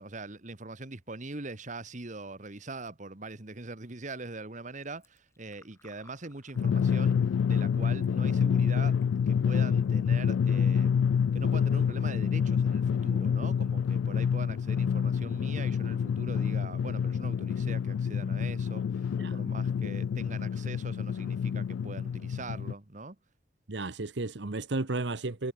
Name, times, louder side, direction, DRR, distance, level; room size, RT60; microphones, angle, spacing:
voice 1, 0.0-7.2 7.5-9.0 9.3-11.0 11.3-23.2, right 2 dB, 40° right, 1.5 m, -42 dB
Fill (with liquid), 4.7-10.9, left 3 dB, 15° left, 5.0 m, -66 dB
Drum, 6.6-22.7, left 7 dB, 80° left, 0.3 m, -28 dB
voice 2, 23.7-25.5, right 2 dB, 65° right, 1.1 m, -33 dB
head